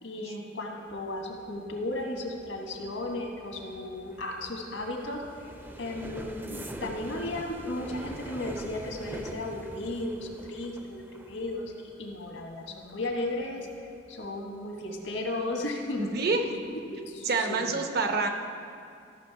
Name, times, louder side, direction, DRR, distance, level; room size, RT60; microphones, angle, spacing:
voice 1, 0.0-5.2 5.8-13.7 14.1-16.1 16.9-17.7, left 1 dB, 85° left, 1 dB, 1.4 m, -35 dB
sound 1, 0.9-15.5 15.9-16.3 16.6-16.9, right 1 dB, 10° right, 0.5 m, -45 dB
voice 2, 16.0-16.5 17.2-18.3, right 3 dB, 55° right, 5 dB, 0.8 m, -27 dB
13.5 x 6.1 x 4.7 m, 2.4 s
head